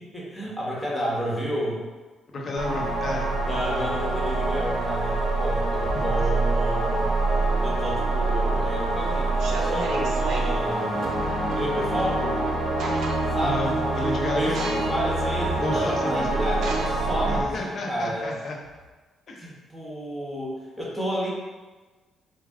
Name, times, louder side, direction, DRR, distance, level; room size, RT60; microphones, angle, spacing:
voice 1, 0.0-1.8 3.5-7.1 7.6-11.0 11.5-12.4 13.3-18.3 19.4-21.3, equal, 10° left, -5 dB, 1.3 m, -31 dB
voice 2, 2.3-3.9 6.2-6.3 13.4-14.6 15.6-16.4 17.3-18.6 19.3-19.5, left 2 dB, 50° left, 0 dB, 0.8 m, -32 dB
sound 1, 2.6-17.4, right 2 dB, 55° right, 0.9 m, -25 dB
sound 2, 9.4-10.5 12.1-12.2 12.5-13.5 13.9-14.2 14.5-15.1 15.6-15.7 16.5-18.9, right 3 dB, 70° right, 0.6 m, -35 dB
4.8 x 2.3 x 3.6 m, 1.3 s
cardioid pair, 90°, 0 cm